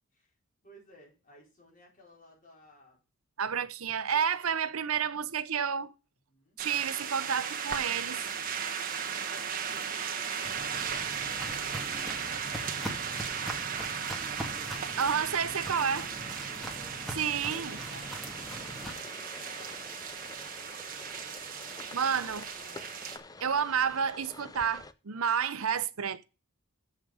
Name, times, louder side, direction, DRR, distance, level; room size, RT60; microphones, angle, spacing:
voice 1, 0.6-3.0 4.3-5.3 6.3-6.6 9.0-12.1 13.7-14.1 14.9-18.2 18.5-19.8 20.3-22.9, left 1 dB, 40° left, 4.1 m, -58 dB
voice 2, 3.4-5.9 6.6-8.2 15.0-16.1 17.1-17.8 21.9-22.4 23.4-26.2, right 7 dB, 75° right, 0.7 m, -30 dB
sound 1, 6.6-23.2, right 7 dB, 40° right, 1.3 m, -36 dB
Walk footsteps, 10.4-18.9, right 1 dB, ahead, 1.7 m, -42 dB
sound 2, 17.5-24.9, left 3 dB, 15° left, 0.5 m, -48 dB
7.5 x 5.7 x 7.0 m
head